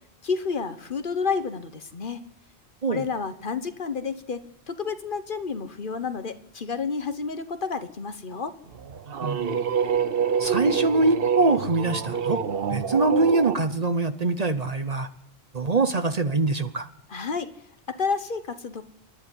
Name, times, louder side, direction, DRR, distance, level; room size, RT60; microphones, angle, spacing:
voice 1, 0.2-2.2 2.9-8.5 17.1-17.5 17.9-18.8, left 5 dB, 50° left, 10 dB, 1.2 m, -30 dB
sound 1, 8.7-13.6, right 7 dB, 60° right, 1.1 m, -26 dB
voice 2, 9.2-9.6 10.4-12.4 12.7-15.1 15.5-16.9, right 3 dB, 40° right, 10 dB, 0.9 m, -24 dB
27.0 x 11.0 x 9.8 m, 0.83 s
omnidirectional pair, 1.1 m